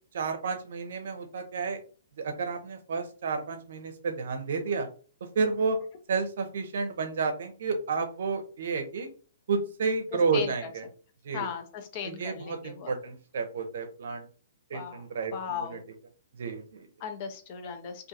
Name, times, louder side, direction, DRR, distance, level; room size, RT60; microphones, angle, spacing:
voice 1, 0.1-1.8 2.2-4.9 5.4-5.8 6.1-9.1 9.5-10.8 11.2-11.5 12.0-14.3 14.7-15.8 16.4-16.9, right 4 dB, 60° right, 6 dB, 0.6 m, -31 dB
voice 2, 10.3-10.7 11.3-12.9 14.7-15.0 15.3-15.8 17.0-18.1, left 7 dB, 40° left, 6 dB, 0.5 m, -37 dB
2.4 x 2.3 x 2.7 m, 0.39 s
figure-of-eight pair, 120°, 0 cm